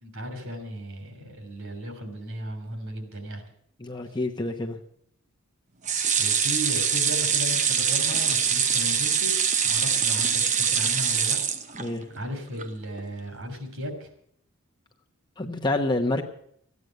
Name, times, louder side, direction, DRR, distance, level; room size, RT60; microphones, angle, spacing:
voice 1, 0.0-3.4 6.2-11.4 12.1-14.1, equal, 65° right, 6 dB, 3.2 m, -36 dB
voice 2, 3.8-4.8 11.8-12.1 15.4-16.2, left 2 dB, 20° left, 2 dB, 1.1 m, -27 dB
sound 1, 5.9-12.2 12.6-12.7 13.0-13.1, right 7 dB, 35° right, 0.8 m, -24 dB
14.5 x 9.6 x 7.8 m, 0.67 s
head